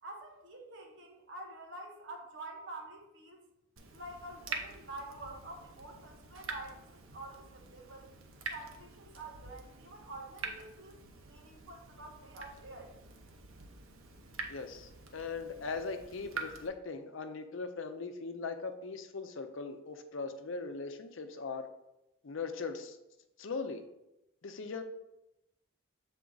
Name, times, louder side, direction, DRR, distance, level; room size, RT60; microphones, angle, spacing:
voice 1, 0.0-3.5 3.9-8.1 8.5-13.0, right 2 dB, 60° right, 1 dB, 1.2 m, -48 dB
Water tap faucet / Drip, 3.8-16.7, right 4 dB, 80° right, 0.8 m, -46 dB
voice 2, 14.5-21.7 22.2-23.0 23.4-23.8 24.4-24.8, left 4 dB, 70° left, 7 dB, 0.6 m, -40 dB
7.2 x 4.3 x 3.9 m, 0.89 s
head